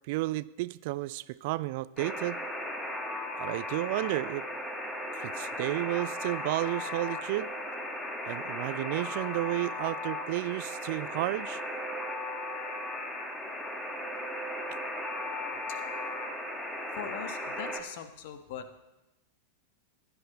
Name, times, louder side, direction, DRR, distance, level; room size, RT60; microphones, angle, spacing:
voice 1, 0.1-2.4 3.4-4.5 5.2-7.5 8.3-11.6, right 18 dB, 50° right, 18 dB, 0.3 m, -32 dB
Alarm, 2.0-17.8, left 1 dB, 10° left, 1.5 m, -36 dB
voice 2, 16.9-18.8, left 8 dB, 50° left, 9 dB, 1.2 m, -41 dB
16.0 x 10.5 x 4.2 m, 1.0 s
figure-of-eight pair, 90°, 0 cm